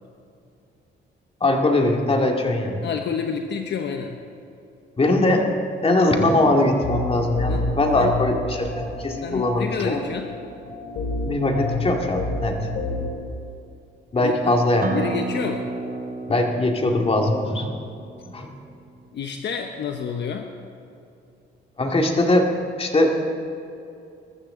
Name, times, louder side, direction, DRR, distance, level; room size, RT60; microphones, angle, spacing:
voice 1, 1.4-2.8 5.0-5.5 5.8-10.0 11.2-12.7 14.1-14.9 16.3-17.7 18.3-18.5 21.8-22.5 22.8-23.1, left 2 dB, 30° left, 2 dB, 2.2 m, -21 dB
voice 2, 2.8-4.2 7.5-8.1 9.2-10.3 14.2-14.6 14.9-15.7 19.1-20.5, left 7 dB, 60° left, 4 dB, 1.0 m, -29 dB
sound 1, 6.8-13.1, left 2 dB, 80° left, 2.8 m, -29 dB
Acoustic guitar, 14.8-20.0, right 4 dB, 45° right, 1.4 m, -33 dB
21.0 x 14.5 x 3.8 m, 2.6 s
cardioid pair, 90°, 20 cm